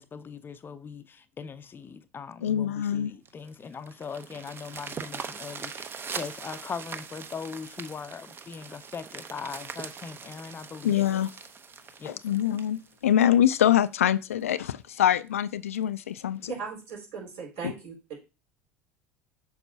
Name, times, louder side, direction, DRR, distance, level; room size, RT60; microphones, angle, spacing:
voice 1, 0.0-11.2 12.0-12.2, left 6 dB, 30° left, 0.5 m, -40 dB
voice 2, 2.4-3.1 10.8-11.3 12.0-16.5 17.6-17.7, left 10 dB, 85° left, 0.4 m, -24 dB
sound 1, 3.3-13.7 14.3-14.4 14.8-14.9 15.3-15.4 15.7-16.0 16.9-17.0, right 5 dB, 30° right, 0.8 m, -41 dB
voice 3, 16.5-18.1, right 5 dB, 65° right, 4.4 m, -38 dB
7.1 x 6.0 x 2.7 m
hypercardioid pair, 70°, 7 cm